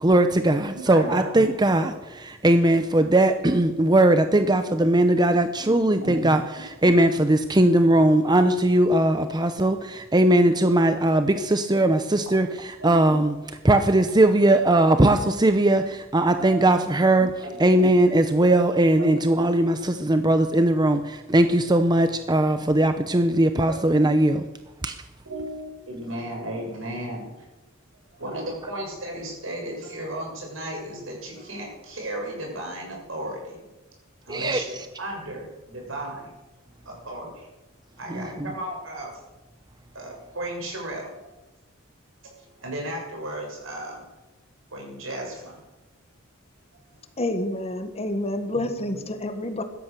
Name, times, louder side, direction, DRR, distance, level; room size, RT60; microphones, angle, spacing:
voice 1, 0.0-13.3 13.6-17.3 17.6-24.4 24.8-24.9 34.3-34.6 38.1-38.5, right 1 dB, 20° right, 8 dB, 0.7 m, -20 dB
voice 2, 0.9-1.3 5.7-6.1 12.8-12.9 16.4-16.6 17.4-17.5 19.0-19.1 23.7-23.8 25.3-27.5 28.1-33.6 34.3-36.3 36.9-37.5 38.0-39.1 39.9-41.1 42.2-44.0 44.7-45.6 48.8-48.9, right 1 dB, 75° right, 0 dB, 7.0 m, -35 dB
voice 3, 47.2-49.6, left 1 dB, 30° left, 8 dB, 1.6 m, -28 dB
16.5 x 13.0 x 6.6 m, 1.1 s
head